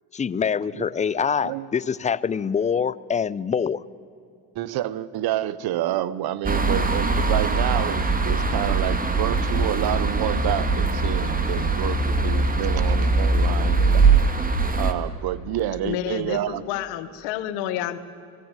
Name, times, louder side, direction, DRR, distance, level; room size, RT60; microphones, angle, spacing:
voice 1, 0.1-3.8, left 6 dB, 20° left, 18 dB, 0.5 m, -25 dB
voice 2, 4.5-14.0 14.8-16.6, right 13 dB, 65° right, 18 dB, 0.9 m, -28 dB
sound 1, 6.4-14.9, right 3 dB, 20° right, 1.9 m, -21 dB
voice 3, 15.8-18.0, left 11 dB, 85° left, 11 dB, 1.3 m, -29 dB
17.5 x 17.5 x 9.0 m, 2.6 s
supercardioid pair, 85°, 40 cm